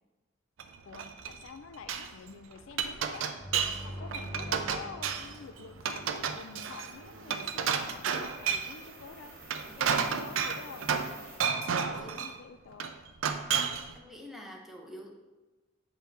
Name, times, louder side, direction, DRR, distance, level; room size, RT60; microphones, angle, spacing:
Glass, 0.6-2.1 2.5-3.8 4.1-5.4 5.8-8.8 9.3-11.2 11.4-12.4 12.8-13.9, right 7 dB, 75° right, 0.5 m, -31 dB
voice 1, 0.9-3.3 3.8-9.3 9.8-11.2 11.6-12.9 13.9-14.0, left 5 dB, 75° left, 9 dB, 0.4 m, -48 dB
sound 1, 3.3-7.1, equal, 20° left, 1.6 m, -45 dB
sound 2, 5.5-11.4, right 2 dB, 50° right, 1.7 m, -52 dB
voice 2, 9.7-10.3 11.8-12.3 13.9-15.2, equal, ahead, -1 dB, 0.8 m, -48 dB
7.1 x 4.4 x 3.5 m, 1.2 s
head